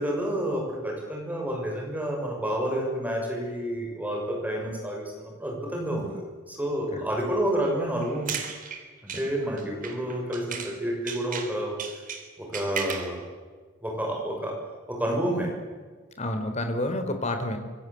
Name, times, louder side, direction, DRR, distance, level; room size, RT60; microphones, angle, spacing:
voice 1, 0.0-8.4 9.0-12.0 12.4-13.2 13.8-14.6 14.9-15.5, right 1 dB, 5° right, 0 dB, 6.6 m, -29 dB
sound 1, 8.0-10.8 11.1-13.1, right 6 dB, 40° right, 3.5 m, -36 dB
voice 2, 16.2-17.6, left 1 dB, 30° left, 7 dB, 3.8 m, -29 dB
26.5 x 23.5 x 8.4 m, 1.5 s
head